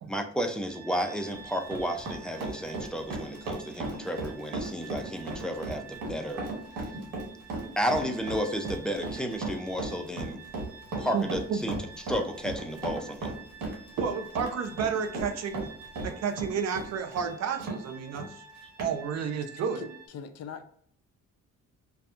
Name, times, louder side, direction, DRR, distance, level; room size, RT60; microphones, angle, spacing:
voice 1, 0.1-6.4 7.8-10.4 11.0-11.8 12.0-13.3, equal, 5° left, 0.4 m, -32 dB
sound 1, 0.7-20.1, right 5 dB, 25° right, 1.1 m, -49 dB
Run, 1.1-17.8 18.1-18.3 18.8-18.9, right 2 dB, 85° right, 1.2 m, -36 dB
voice 2, 11.1-11.6 14.0-15.7 16.0-18.2 18.8-19.9, right 6 dB, 60° right, 0.6 m, -31 dB
voice 3, 19.8-20.7, left 7 dB, 55° left, 0.5 m, -42 dB
2.6 x 2.3 x 2.4 m
cardioid pair, 90°, 30 cm